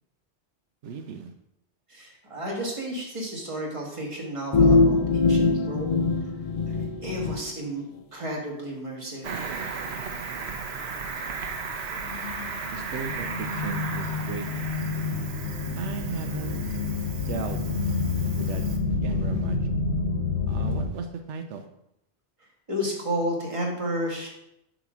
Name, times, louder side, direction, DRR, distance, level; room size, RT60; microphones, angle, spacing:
voice 1, 0.8-1.3 12.7-14.5 15.7-16.7 17.2-19.6 20.5-21.6, right 5 dB, 85° right, 6 dB, 0.9 m, -36 dB
voice 2, 1.9-6.1 7.0-7.8 8.1-9.4 22.7-24.3, equal, 30° right, -2 dB, 1.6 m, -32 dB
sound 1, 4.5-7.4, left 3 dB, 55° left, 0.4 m, -21 dB
Cricket, 9.2-18.8, right 5 dB, 70° right, 1.1 m, -36 dB
sound 2, 11.9-20.9, left 4 dB, 75° left, 1.3 m, -29 dB
9.0 x 3.0 x 6.1 m, 0.83 s
omnidirectional pair, 1.2 m